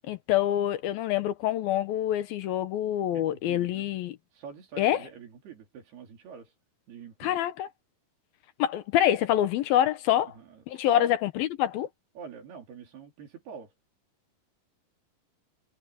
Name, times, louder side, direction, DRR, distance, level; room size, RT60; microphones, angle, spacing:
voice 1, 0.0-4.2 4.8-5.1 7.2-7.7 8.6-10.3 10.7-11.9, left 12 dB, 75° left, 2.7 m, -26 dB
voice 2, 3.1-3.9 4.3-6.5 6.9-7.4 10.4-11.1 12.2-13.7, right 6 dB, 80° right, 5.5 m, -45 dB
omnidirectional pair, 4.5 m